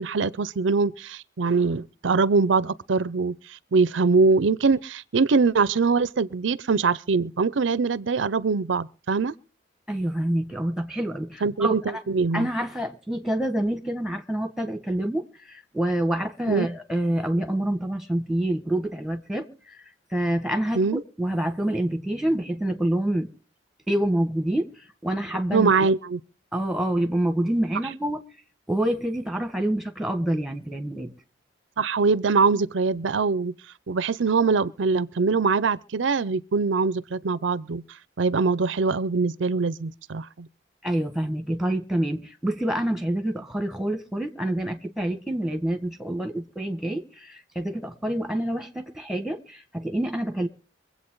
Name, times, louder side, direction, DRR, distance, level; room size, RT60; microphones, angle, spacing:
voice 1, 0.0-9.3 11.4-12.5 16.4-16.7 20.7-21.0 25.5-26.2 31.8-33.5 33.9-37.8 38.2-40.5, right 4 dB, 80° right, 0.6 m, -23 dB
voice 2, 9.9-12.0 12.3-19.8 20.1-20.8 21.2-23.3 23.9-24.7 25.0-25.9 26.5-28.2 28.7-31.1 40.8-50.5, right 1 dB, 5° right, 1.6 m, -27 dB
24.5 x 8.3 x 3.9 m
head